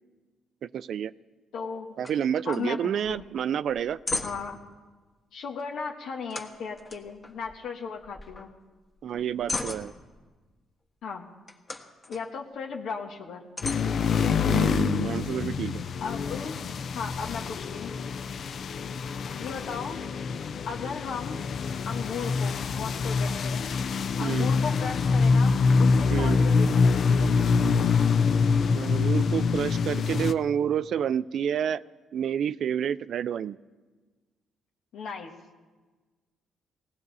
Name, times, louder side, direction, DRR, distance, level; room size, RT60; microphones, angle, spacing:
voice 1, 0.6-1.1 2.0-4.0 9.0-9.9 14.4-15.8 24.2-24.5 26.1-26.4 28.8-31.8 32.1-33.6, right 8 dB, 65° right, 16 dB, 0.4 m, -29 dB
voice 2, 1.5-1.9 2.4-3.2 4.2-4.6 5.3-8.5 11.0-11.3 12.1-13.5 16.0-16.6 16.9-17.9 19.4-20.0 20.7-21.4 21.8-23.6 24.2-27.3 34.9-35.3, left 5 dB, 75° left, 1 dB, 1.4 m, -36 dB
sound 1, 2.0-2.2 2.5-2.6 3.0-3.3 3.7-4.6 6.3-7.7 8.0-8.6 9.0-10.3 11.4-12.2 12.8-12.9 13.6-14.6, left 2 dB, 25° left, 1.6 m, -36 dB
sound 2, 13.6-30.3, left 5 dB, 55° left, 0.6 m, -25 dB
18.5 x 17.0 x 4.1 m, 1.3 s
cardioid pair, 90°, 0 cm